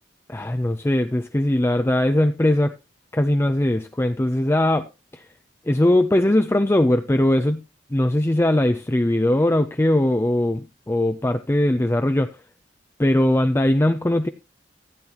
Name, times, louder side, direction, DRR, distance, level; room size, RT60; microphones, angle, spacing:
voice 1, 0.3-2.7 3.1-4.9 5.1-5.2 5.7-7.6 7.9-12.3 13.0-14.3, left 1 dB, 15° left, 0.5 m, -20 dB
15.5 x 8.8 x 2.9 m
head